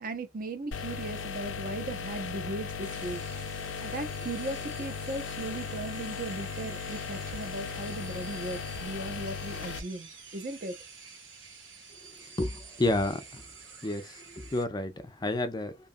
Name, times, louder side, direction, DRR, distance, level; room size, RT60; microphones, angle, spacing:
voice 1, 0.0-3.2 3.8-10.8, right 2 dB, 45° right, 0.5 m, -37 dB
sound 1, 0.7-9.8, left 6 dB, 85° left, 0.5 m, -37 dB
sound 2, 2.8-14.7, right 5 dB, 90° right, 1.1 m, -50 dB
voice 2, 12.4-13.4 13.8-15.8, left 2 dB, 20° left, 0.4 m, -30 dB
2.8 x 2.3 x 2.5 m
head